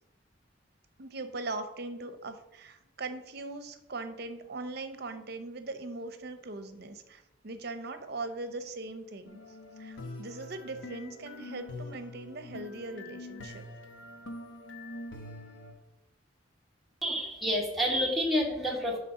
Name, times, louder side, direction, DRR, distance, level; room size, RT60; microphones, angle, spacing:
voice 1, 1.0-9.4 9.8-13.6, right 2 dB, 60° right, 9 dB, 0.7 m, -40 dB
sound 1, 9.3-15.7, left 2 dB, 85° left, 1.0 m, -44 dB
voice 2, 17.0-19.0, equal, ahead, -3 dB, 1.4 m, -29 dB
8.2 x 3.6 x 5.6 m, 0.89 s
head